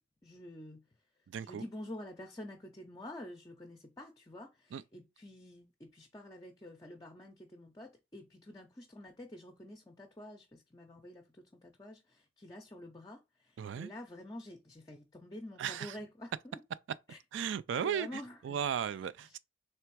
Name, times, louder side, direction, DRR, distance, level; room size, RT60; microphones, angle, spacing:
voice 1, 0.2-0.9 1.4-16.6 17.1-17.2 17.8-18.6 19.2-19.4, left 1 dB, 20° left, 0.5 m, -48 dB
voice 2, 1.3-1.6 4.7-4.8 13.6-13.9 15.6-16.0 17.3-19.4, right 8 dB, 90° right, 0.3 m, -36 dB
3.4 x 3.3 x 4.6 m
head